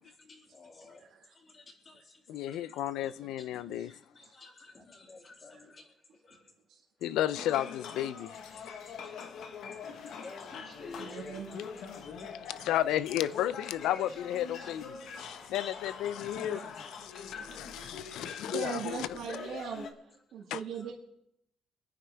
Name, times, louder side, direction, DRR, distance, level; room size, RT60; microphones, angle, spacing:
voice 1, 0.0-6.5 8.0-9.3 10.2-12.4 12.9-14.0 16.5-17.6 20.1-20.4 20.8-20.9, left 3 dB, 30° left, 2.7 m, -54 dB
voice 2, 2.3-3.9 7.0-8.5 12.3-16.7 17.0-19.2 20.5-20.6, left 12 dB, 85° left, 0.5 m, -33 dB
sound 1, 7.3-19.9, left 6 dB, 60° left, 1.3 m, -43 dB
voice 3, 11.0-11.6 11.8-11.9 14.5-14.7 16.5-16.7 17.4-17.7 18.5-19.9 20.3-20.9, right 7 dB, 70° right, 1.9 m, -40 dB
25.5 x 9.5 x 3.5 m
cardioid pair, 150°, 0 cm